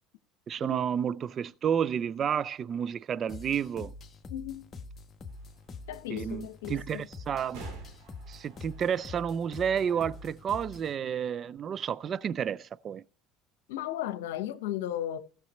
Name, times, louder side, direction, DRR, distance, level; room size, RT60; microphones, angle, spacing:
voice 1, 0.5-3.9 6.1-7.6 8.3-13.0, right 8 dB, 45° right, 0.4 m, -31 dB
sound 1, 3.3-11.0, left 3 dB, 35° left, 1.3 m, -45 dB
voice 2, 4.3-4.6 5.9-7.1 13.7-15.2, left 12 dB, 80° left, 0.9 m, -35 dB
sound 2, 5.3-10.3, right 4 dB, 70° right, 3.4 m, -52 dB
16.5 x 6.7 x 3.1 m
hypercardioid pair, 75°, 0 cm